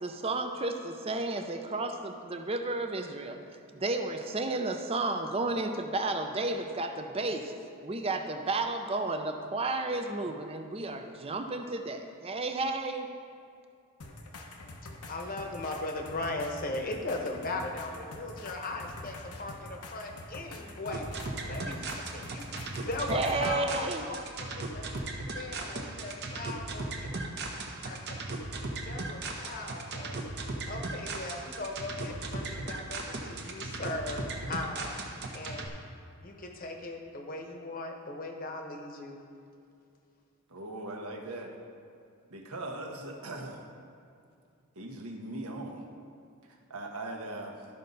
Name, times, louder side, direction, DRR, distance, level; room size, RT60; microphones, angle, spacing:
voice 1, 0.0-3.4 3.7-7.5 7.8-13.1 23.1-24.0, right 2 dB, 25° right, 6 dB, 0.5 m, -32 dB
sound 1, 14.0-23.6 25.0-25.1, left 2 dB, 90° left, 1.0 m, -46 dB
voice 2, 15.1-21.1 21.4-21.8 22.1-24.2 24.5-24.8 25.3-27.1 27.8-28.2 28.8-30.2 30.6-35.0 35.3-35.7 36.2-39.2, left 2 dB, 40° left, 3 dB, 1.0 m, -38 dB
sound 2, 20.9-35.7, right 2 dB, 50° right, 0.9 m, -37 dB
voice 3, 40.5-41.6 42.3-43.6 44.7-45.9 46.4-47.7, right 2 dB, 80° right, 1 dB, 1.1 m, -40 dB
13.0 x 5.5 x 4.0 m, 2.4 s
head